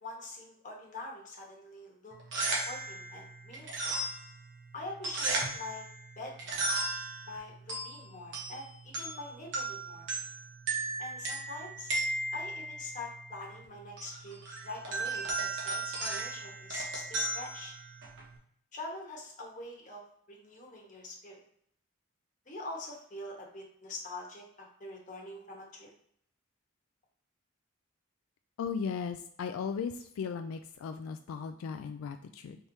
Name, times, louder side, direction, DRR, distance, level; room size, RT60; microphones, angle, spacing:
voice 1, 0.0-3.9 4.7-5.9 6.2-6.7 7.2-10.1 11.0-11.9 12.3-14.4 14.6-17.7 18.7-20.0 20.3-21.4 22.5-25.9, left 2 dB, 40° left, -1 dB, 1.1 m, -44 dB
sound 1, 2.1-18.4, right 2 dB, 60° right, 1.0 m, -36 dB
voice 2, 28.6-32.6, left 6 dB, 85° left, 7 dB, 0.3 m, -37 dB
4.5 x 3.4 x 2.7 m, 0.67 s
head